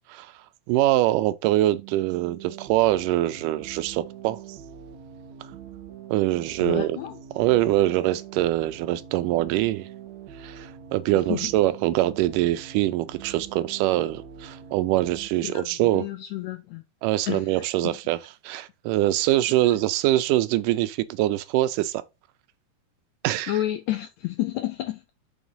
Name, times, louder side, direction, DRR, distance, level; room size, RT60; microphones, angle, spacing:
voice 1, 0.7-4.4 6.1-7.0 7.4-9.9 10.4-16.0 17.0-22.0 23.2-23.5, right 15 dB, 80° right, 2.1 m, -24 dB
sound 1, 1.7-15.3, right 8 dB, 65° right, 2.1 m, -43 dB
voice 2, 6.6-7.2 11.3-11.5 15.4-16.8 17.3-18.0 19.6-19.8 23.5-25.0, left 14 dB, 85° left, 1.6 m, -31 dB
6.1 x 3.9 x 5.4 m
omnidirectional pair, 3.8 m